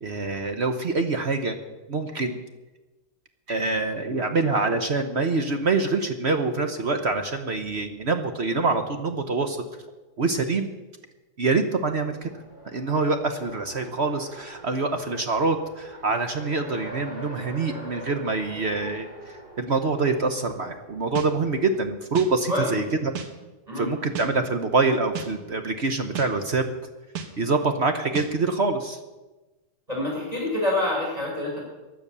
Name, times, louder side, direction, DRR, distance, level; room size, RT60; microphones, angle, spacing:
voice 1, 0.0-1.5 1.9-2.4 3.5-9.7 10.2-10.7 11.4-12.3 12.7-23.1 23.8-26.6 27.4-29.0, right 3 dB, 50° right, 7 dB, 0.8 m, -25 dB
Race car auto racing, 11.8-21.8, right 1 dB, 65° right, 6.3 m, -44 dB
sound 1, 21.2-21.3 22.1-22.3 23.1-23.3 24.2-24.3 25.1-25.3 26.1-26.3 27.2-27.3 28.1-28.3, right 7 dB, 85° right, 2.3 m, -33 dB
voice 2, 22.5-22.8 23.7-23.9 29.9-31.7, left 1 dB, 15° right, -3 dB, 7.0 m, -27 dB
16.0 x 11.0 x 6.8 m, 1.1 s
omnidirectional pair, 2.4 m